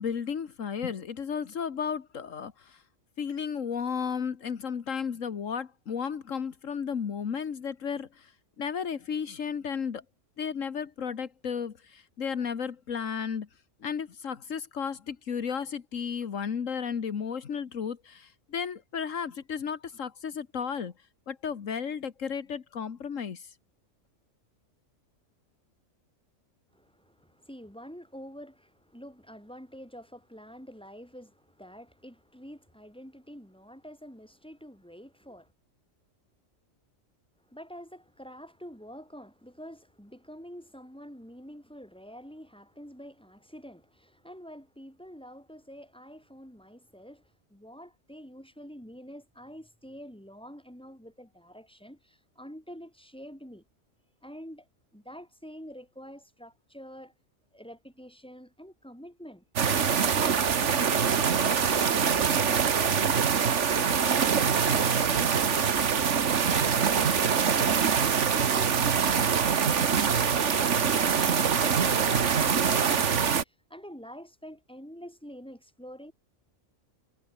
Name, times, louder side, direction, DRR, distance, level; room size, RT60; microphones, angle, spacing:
voice 1, 0.0-2.8 3.2-8.3 8.6-10.0 10.4-13.5 13.8-20.9 21.3-23.5, left 7 dB, 80° left, 1.7 m, -33 dB
voice 2, 26.7-35.5 37.4-53.6 54.2-54.7 54.9-57.1 57.5-67.3 67.7-76.1, equal, 5° left, 7.2 m, -47 dB
sound 1, 59.6-73.4, right 6 dB, 65° right, 1.6 m, -24 dB
omnidirectional pair, 1.3 m